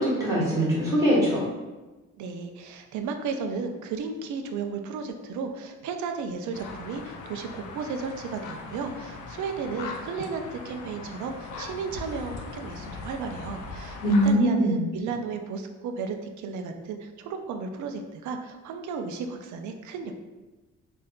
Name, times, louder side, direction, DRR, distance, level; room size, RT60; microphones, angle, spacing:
voice 1, 0.0-1.4 14.0-14.8, equal, 10° right, -7 dB, 1.2 m, -22 dB
voice 2, 2.2-20.1, right 5 dB, 75° right, 6 dB, 0.5 m, -34 dB
sound 1, 6.5-14.3, left 4 dB, 80° left, 0.5 m, -40 dB
3.5 x 2.5 x 2.3 m, 1.1 s
cardioid pair, 90°, 30 cm